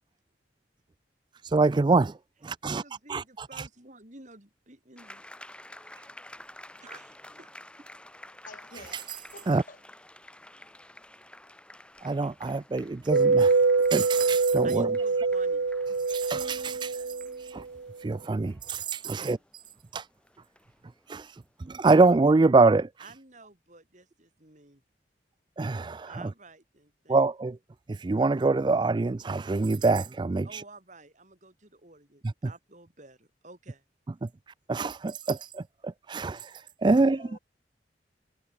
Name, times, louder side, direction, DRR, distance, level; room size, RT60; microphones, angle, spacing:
voice 1, 1.4-2.1 2.4-2.8 3.1-3.2 3.5-3.7 8.9-9.2 9.5-9.6 12.0-13.6 13.9-14.9 16.1-17.6 18.0-19.4 19.9-20.1 21.1-21.4 21.7-22.9 25.6-26.1 27.1-27.6 27.9-30.6 34.2-34.3 34.7-37.3, right 3 dB, 25° right, 0.3 m, -25 dB
voice 2, 2.6-5.2 6.8-7.5 14.6-15.7 19.1-19.3 23.0-24.8 26.1-27.2 30.4-33.8, right 3 dB, 40° right, 4.6 m, -51 dB
sound 1, 5.0-21.6, left 1 dB, 5° left, 4.3 m, -51 dB
voice 3, 8.4-9.8 37.0-37.4, left 3 dB, 45° left, 3.1 m, -49 dB
sound 2, 13.1-17.5, right 4 dB, 70° right, 0.7 m, -24 dB
head